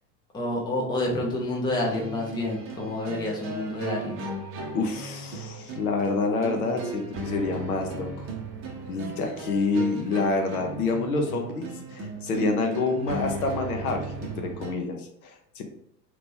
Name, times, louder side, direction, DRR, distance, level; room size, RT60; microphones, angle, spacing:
voice 1, 0.3-4.2, left 1 dB, 10° left, -2 dB, 0.6 m, -28 dB
sound 1, 1.7-14.8, right 3 dB, 25° right, 0.7 m, -37 dB
voice 2, 4.7-8.3 8.9-15.6, left 3 dB, 60° left, 4 dB, 0.8 m, -27 dB
2.9 x 2.9 x 3.6 m, 0.75 s
figure-of-eight pair, 85°, 49 cm